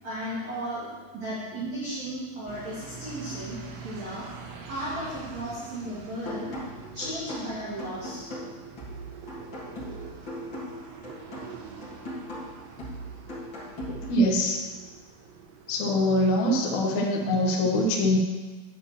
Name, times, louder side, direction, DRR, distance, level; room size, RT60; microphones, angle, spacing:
voice 1, 0.0-4.3 4.7-6.5 6.9-8.3, right 1 dB, 45° right, -11 dB, 3.1 m, -35 dB
sound 1, 2.5-16.4, right 5 dB, 75° right, 2.7 m, -45 dB
sound 2, 6.3-14.3, left 1 dB, 45° left, 1.6 m, -39 dB
voice 2, 13.9-14.7 15.7-18.2, left 1 dB, 75° left, -2 dB, 1.7 m, -24 dB
9.8 x 9.0 x 3.1 m, 1.3 s
omnidirectional pair, 5.3 m